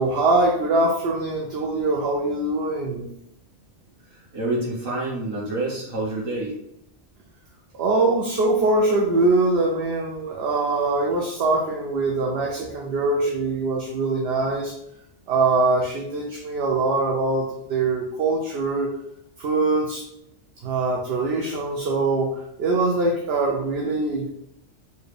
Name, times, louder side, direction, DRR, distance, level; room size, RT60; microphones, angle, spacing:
voice 1, 0.0-3.1 7.8-14.7 15.3-18.9 19.4-20.0 20.6-24.3, right 2 dB, 65° right, -1 dB, 0.8 m, -23 dB
voice 2, 4.1-6.5, right 2 dB, 50° right, -5 dB, 1.5 m, -28 dB
4.4 x 2.3 x 3.2 m, 0.79 s
omnidirectional pair, 1.2 m